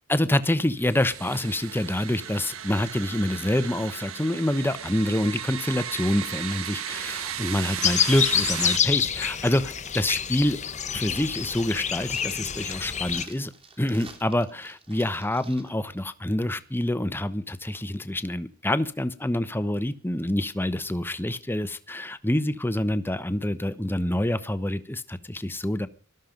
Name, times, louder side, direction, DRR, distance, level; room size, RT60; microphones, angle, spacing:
voice 1, 0.1-10.6 10.9-13.5 13.8-25.9, left 1 dB, 10° left, 12 dB, 1.0 m, -27 dB
sound 1, 0.8-8.8, right 9 dB, 70° right, 1.3 m, -35 dB
sound 2, 7.8-13.2, left 8 dB, 35° left, 1.0 m, -27 dB
sound 3, 11.3-15.7 16.0-16.1, right 4 dB, 25° right, 3.1 m, -48 dB
19.0 x 13.5 x 5.3 m, 0.41 s
head